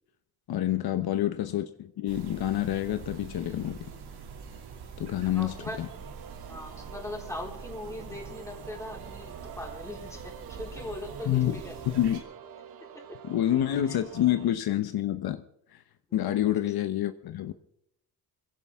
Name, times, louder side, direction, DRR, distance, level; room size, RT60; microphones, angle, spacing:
voice 1, 0.5-3.9 5.0-5.9 11.3-11.6 11.9-12.2 13.2-15.4 15.7-15.8 16.1-17.5, left 12 dB, 70° left, 10 dB, 0.9 m, -28 dB
sound 1, 2.1-12.2, right 5 dB, 90° right, 2.8 m, -44 dB
voice 2, 5.0-5.8 6.4-12.0 12.9-13.2 13.9-14.0 16.1-16.4, left 1 dB, 10° left, -1 dB, 3.9 m, -41 dB
sound 2, 5.5-14.5, right 8 dB, 65° right, 1.2 m, -48 dB
Singing, 9.3-14.7, right 7 dB, 35° right, 1.0 m, -51 dB
22.0 x 16.0 x 3.6 m, 0.74 s
cardioid pair, 115°, 38 cm